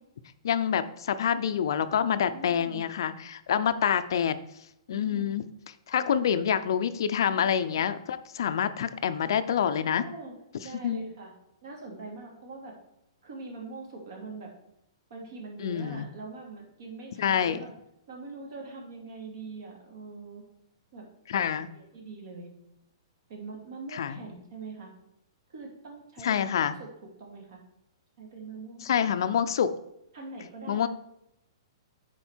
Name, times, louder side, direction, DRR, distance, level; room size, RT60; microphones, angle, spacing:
voice 1, 0.4-4.4 4.9-5.4 5.9-10.0 10.8-11.0 15.6-16.1 17.2-17.6 21.3-21.7 23.9-24.2 26.2-26.7 28.8-29.7 30.7-30.9, left 8 dB, 60° left, 12 dB, 0.5 m, -27 dB
voice 2, 2.3-2.8 4.9-5.4 6.0-6.3 7.3-7.9 9.7-10.3 10.6-11.3 11.6-12.7 13.2-14.5 15.1-17.7 18.1-20.4 20.9-21.1 21.7-22.5 23.3-24.9 25.5-26.9 27.2-27.6 28.2-29.0 30.1-30.9, right 3 dB, 50° right, 0 dB, 2.6 m, -43 dB
10.0 x 4.4 x 4.4 m, 0.80 s
hypercardioid pair, 170°, 3 cm